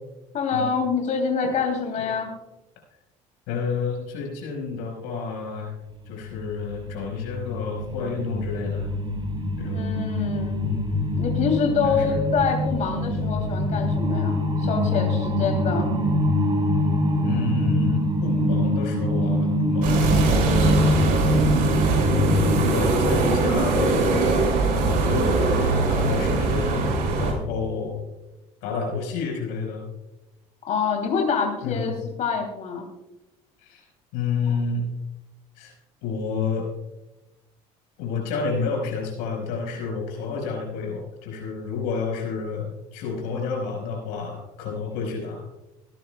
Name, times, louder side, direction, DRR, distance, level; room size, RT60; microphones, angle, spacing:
voice 1, 0.3-2.3 9.7-10.6 11.2-15.9 30.7-32.9, left 5 dB, 55° left, 2 dB, 2.9 m, -26 dB
voice 2, 3.5-5.7 6.0-8.9 9.6-9.9 10.6-11.0 11.8-12.2 17.2-21.5 22.0-22.2 22.5-26.8 27.2-28.0 28.6-29.9 31.6-31.9 33.6-33.9 34.1-34.9 35.5-35.7 36.0-36.7 38.0-45.5, left 5 dB, 85° left, 1 dB, 4.7 m, -30 dB
sound 1, 6.0-22.7, left 1 dB, 35° right, 3.3 m, -24 dB
sound 2, 19.8-27.3, right 3 dB, 70° right, 5.2 m, -22 dB
24.5 x 10.5 x 2.2 m, 0.98 s
supercardioid pair, 90°, 15 cm